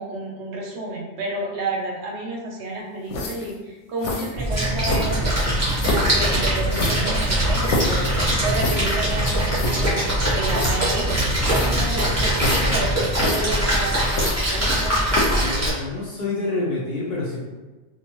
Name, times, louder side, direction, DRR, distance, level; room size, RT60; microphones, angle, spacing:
voice 1, 0.0-5.2 5.9-8.0 8.4-12.9 13.2-15.1, right 2 dB, 70° right, -1 dB, 0.9 m, -30 dB
sound 1, 3.1-3.5 4.0-4.3 4.8-5.3 5.8-6.1 6.7-8.0 8.6-8.9 9.3-9.4 9.5-9.8 10.5-10.7 11.4-11.8 12.3-12.8 13.1-13.4 14.1-14.8 15.1-15.4, left 2 dB, 85° left, 0.9 m, -26 dB
sound 2, 4.3-13.3, right 2 dB, 35° left, 1.5 m, -28 dB
Splash splatter, 4.4-15.7, equal, 15° right, 0.8 m, -23 dB
voice 2, 15.3-17.4, left 2 dB, 60° left, -5 dB, 0.5 m, -27 dB
2.5 x 2.2 x 2.9 m, 1.2 s
omnidirectional pair, 1.2 m